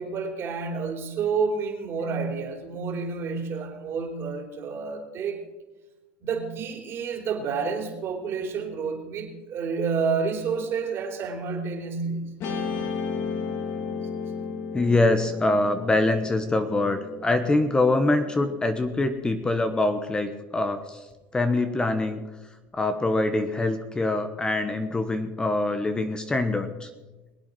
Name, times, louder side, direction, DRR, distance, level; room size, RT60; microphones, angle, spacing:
voice 1, 0.0-5.4 6.2-12.3, right 5 dB, 45° right, 3 dB, 3.4 m, -29 dB
Marimba xylophone / Wood, 2.0-4.7, right 1 dB, 70° left, 5.7 m, -52 dB
Guitar, 12.4-18.9, left 5 dB, 50° left, 2.7 m, -34 dB
voice 2, 14.7-21.0 21.3-22.2 22.7-26.9, left 2 dB, 15° left, 8 dB, 1.1 m, -24 dB
22.0 x 8.6 x 6.2 m, 1.2 s
supercardioid pair, 110°, 6 cm